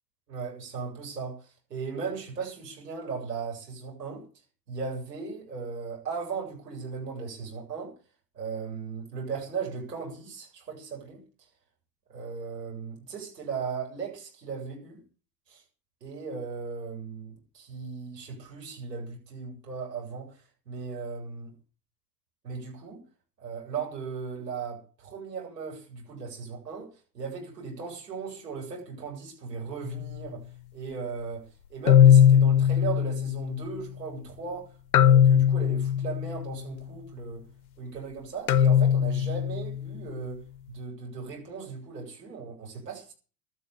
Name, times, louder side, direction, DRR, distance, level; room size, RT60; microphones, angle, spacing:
voice 1, 0.3-4.2 4.7-7.9 8.3-11.2 12.1-15.0 15.5-15.6 16.0-20.3 20.7-21.6 22.4-23.1 23.4-26.9 27.1-30.5 30.7-31.4 31.7-37.5 37.8-40.4 40.7-43.1, right 5 dB, 75° right, 8.0 m, -37 dB
sound 1, 29.9-30.2 31.9-33.8 34.9-36.6 38.5-40.0, left 9 dB, 60° left, 0.8 m, -20 dB
17.0 x 12.5 x 5.7 m
figure-of-eight pair, 80°, 49 cm